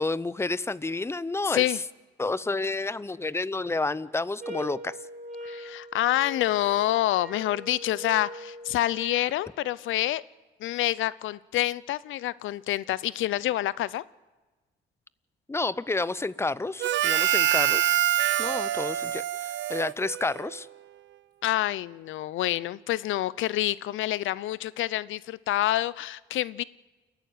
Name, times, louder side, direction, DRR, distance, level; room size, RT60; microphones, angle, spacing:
voice 1, 0.0-1.6 2.2-5.0 15.5-18.0 18.4-20.7, left 3 dB, 15° left, 18 dB, 0.6 m, -30 dB
sound 1, 4.4-9.3, equal, 40° right, 5.6 m, -41 dB
voice 2, 5.4-10.2 10.6-14.0 21.4-26.6, left 14 dB, 80° left, 20 dB, 0.6 m, -27 dB
Harmonica, 16.8-20.6, right 13 dB, 70° right, 0.6 m, -25 dB
29.5 x 11.5 x 9.3 m, 1.2 s
cardioid pair, 90°, 20 cm